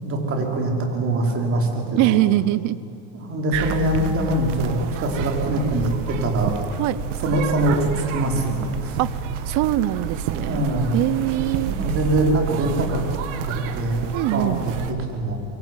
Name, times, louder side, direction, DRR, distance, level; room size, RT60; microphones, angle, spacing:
voice 1, 0.0-2.2 3.1-6.6 7.2-9.0 10.4-10.9 11.7-13.0 13.4-15.4, right 1 dB, 35° right, 2 dB, 5.3 m, -23 dB
voice 2, 2.0-2.8 6.8-7.0 9.0-9.1 9.5-10.6 10.9-11.7 14.1-14.7, right 15 dB, 55° right, 18 dB, 1.1 m, -22 dB
sound 1, 3.5-14.9, right 6 dB, 80° right, 2.2 m, -29 dB
25.5 x 22.5 x 9.5 m, 2.5 s
supercardioid pair, 130°, 37 cm